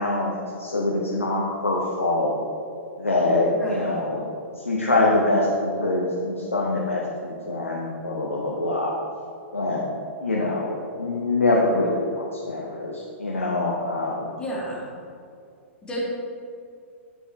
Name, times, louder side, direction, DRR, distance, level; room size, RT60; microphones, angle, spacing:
voice 1, 0.0-2.3 3.0-4.2 4.7-8.9 9.5-9.9 10.2-14.3, left 2 dB, 80° left, -3 dB, 1.0 m, -24 dB
voice 2, 3.5-4.0 14.4-14.8 15.8-16.0, equal, 10° left, -5 dB, 2.1 m, -32 dB
8.5 x 8.0 x 3.1 m, 2.4 s
figure-of-eight pair, 110°, 7 cm